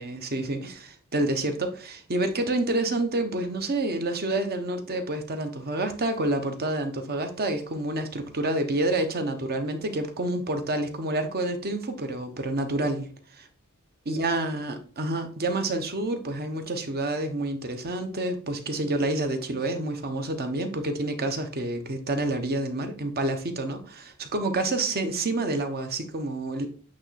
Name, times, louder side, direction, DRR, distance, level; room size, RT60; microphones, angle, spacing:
voice 1, 0.0-13.1 13.4-13.5 14.1-26.7, right 2 dB, 45° right, 6 dB, 1.0 m, -28 dB
8.6 x 3.0 x 4.2 m, 0.41 s
head